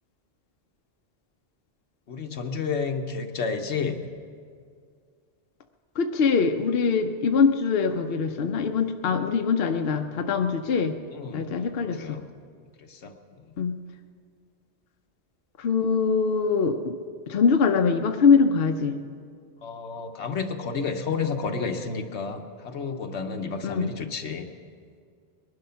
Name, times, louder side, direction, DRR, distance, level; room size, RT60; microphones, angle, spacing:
voice 1, 2.1-4.1 11.1-12.3 12.8-13.4 19.6-24.5, left 5 dB, 90° left, 5 dB, 1.3 m, -31 dB
voice 2, 5.9-11.0 11.3-12.2 13.6-13.8 15.6-17.0 17.3-19.0 23.6-23.9, left 5 dB, 65° left, 5 dB, 0.9 m, -23 dB
20.5 x 11.5 x 5.7 m, 2.1 s
omnidirectional pair, 1.1 m